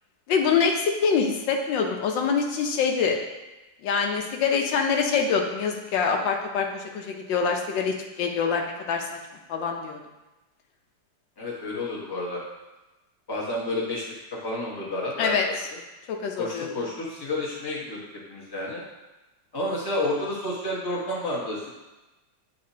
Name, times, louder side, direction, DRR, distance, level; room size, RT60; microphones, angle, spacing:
voice 1, 0.3-3.2 3.8-9.1 9.5-10.0 15.2-15.5 16.1-16.7, left 5 dB, 85° left, 2 dB, 1.4 m, -25 dB
voice 2, 11.4-12.4 13.3-14.0 14.3-15.8 16.4-18.8 19.5-21.7, left 1 dB, 15° left, -5 dB, 1.0 m, -30 dB
8.6 x 4.1 x 2.8 m, 1.1 s
omnidirectional pair, 2.0 m